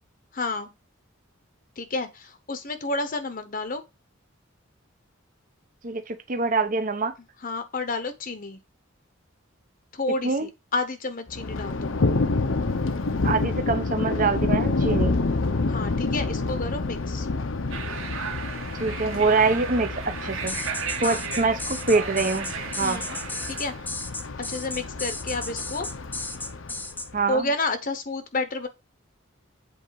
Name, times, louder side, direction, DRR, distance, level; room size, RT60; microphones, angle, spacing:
voice 1, 0.3-0.7 1.8-3.8 7.4-8.6 9.9-12.0 15.7-17.3 21.0-21.2 22.8-23.2 23.5-23.7 24.4-25.9 27.3-28.7, left 2 dB, 45° left, 0.9 m, -30 dB
voice 2, 5.8-7.1 10.2-10.5 13.2-15.2 18.8-20.6 21.0-23.1 27.1-27.5, right 4 dB, 40° right, 0.9 m, -25 dB
Thunder, 11.3-27.2, left 3 dB, 70° left, 0.9 m, -28 dB
sound 1, 17.7-23.9, right 6 dB, 85° right, 1.7 m, -35 dB
sound 2, 20.5-27.1, left 2 dB, 10° left, 0.6 m, -34 dB
7.9 x 4.3 x 4.7 m
head